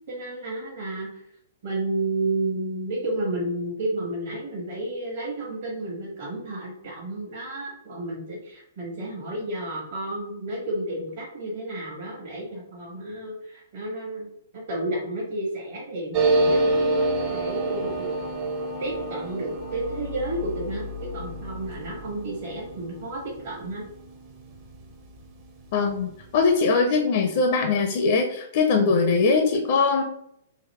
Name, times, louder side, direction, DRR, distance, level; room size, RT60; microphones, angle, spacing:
voice 1, 0.1-1.2 1.6-14.3 14.5-18.1 18.8-23.8 28.8-28.9, right 1 dB, 50° right, -5 dB, 1.2 m, -31 dB
sound 1, 16.1-25.3 25.6-25.7 25.9-26.5, right 2 dB, 35° right, 0.7 m, -28 dB
voice 2, 25.7-30.0, left 4 dB, 45° left, 4 dB, 0.4 m, -21 dB
3.9 x 2.7 x 3.0 m, 0.75 s
figure-of-eight pair, 110°, 0 cm